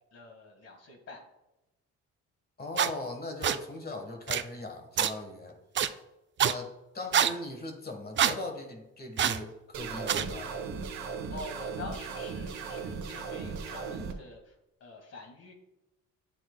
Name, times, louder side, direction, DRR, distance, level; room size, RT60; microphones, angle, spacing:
voice 1, 0.1-1.2 11.3-14.5 14.8-15.5, left 2 dB, 55° left, 4 dB, 1.8 m, -45 dB
voice 2, 2.6-5.6 6.4-10.6, left 2 dB, 30° left, 4 dB, 1.3 m, -39 dB
sound 1, 2.8-2.9 3.4-3.6 4.3-4.4 5.0-5.1 5.7-5.9 6.4-6.5 7.1-7.3 8.2-8.4 9.2-9.4 10.1-10.2, right 9 dB, 40° right, 0.4 m, -25 dB
sound 2, 9.7-14.1, right 5 dB, 70° right, 1.2 m, -37 dB
9.3 x 7.5 x 2.2 m, 0.95 s
cardioid pair, 90°, 30 cm